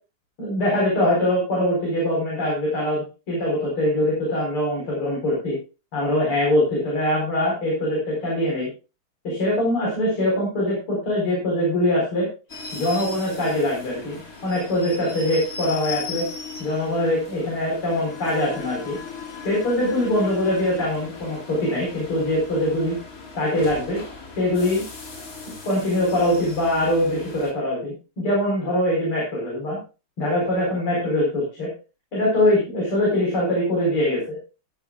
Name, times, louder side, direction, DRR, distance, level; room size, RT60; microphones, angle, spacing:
voice 1, 0.4-5.6 5.9-8.7 9.2-12.3 12.7-16.3 16.6-19.0 19.5-23.0 23.3-24.0 24.4-24.8 25.7-29.8 30.2-31.7 32.1-34.4, left 1 dB, 80° left, -3 dB, 5.3 m, -23 dB
sound 1, 12.5-27.5, left 4 dB, 40° left, 2.4 m, -37 dB
14.5 x 12.5 x 2.4 m, 0.31 s
omnidirectional pair, 2.4 m